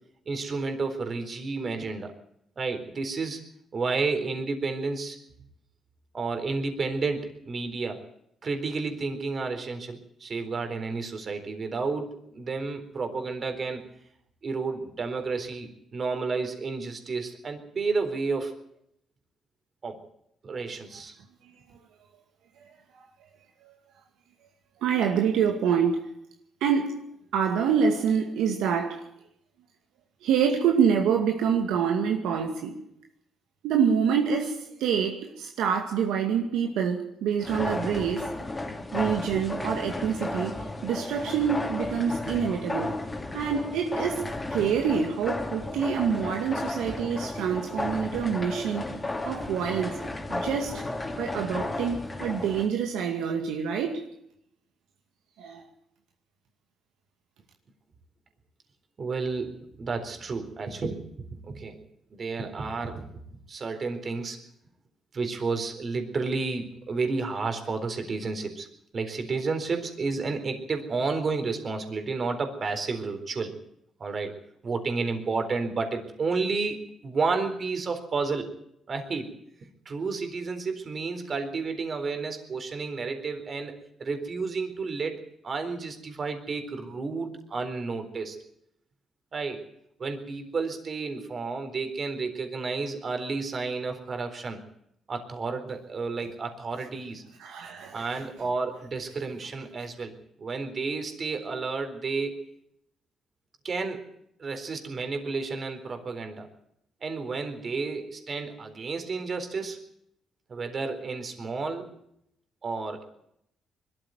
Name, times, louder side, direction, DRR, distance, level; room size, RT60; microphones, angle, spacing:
voice 1, 0.3-2.1 2.6-3.4 3.7-5.2 6.1-8.0 8.4-13.9 14.4-18.6 19.8-20.0 20.4-21.2 59.0-61.8 62.1-63.1 63.5-64.4 65.1-68.7 68.9-73.6 74.0-74.3 74.6-78.5 78.9-79.3 79.9-88.4 89.3-89.7 90.0-94.6 95.1-97.2 97.9-102.4 103.6-104.0 104.4-106.5 107.0-109.8 110.5-111.9 112.6-113.1, right 4 dB, 45° right, 4.0 m, -31 dB
voice 2, 24.8-26.0 26.6-27.0 27.3-29.0 30.2-32.8 33.6-38.3 38.9-40.6 40.8-43.0 43.3-44.2 44.5-48.8 49.3-50.0 50.3-50.8 51.2-54.0 55.4-55.6 97.4-98.1, right 7 dB, 85° right, 2.3 m, -26 dB
sound 1, 37.4-52.7, left 2 dB, 20° left, 3.3 m, -33 dB
21.0 x 13.5 x 9.4 m
cardioid pair, 80°, 0 cm